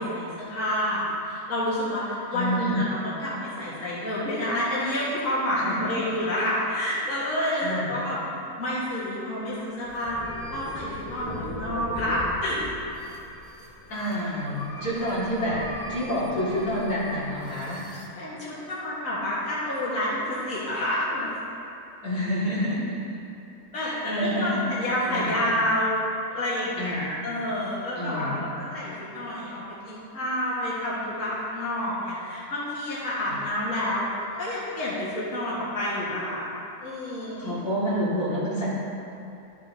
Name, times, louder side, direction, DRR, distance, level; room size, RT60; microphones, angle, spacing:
voice 1, 0.0-8.2 8.6-10.2 10.5-12.6 18.1-21.4 23.7-25.9 26.3-28.4 28.7-36.5 36.8-37.6, left 1 dB, 55° left, -9 dB, 1.9 m, -29 dB
voice 2, 2.3-2.8 5.5-5.9 7.5-7.9 13.9-15.6 15.9-17.8 22.0-23.2 23.7-24.6 25.1-25.4 26.8-27.1 28.0-28.5 33.3-33.4 37.4-38.7, equal, 85° left, -9 dB, 2.7 m, -28 dB
sound 1, 9.8-18.1, left 1 dB, 20° left, 0.9 m, -39 dB
12.5 x 7.2 x 2.7 m, 2.8 s
omnidirectional pair, 1.6 m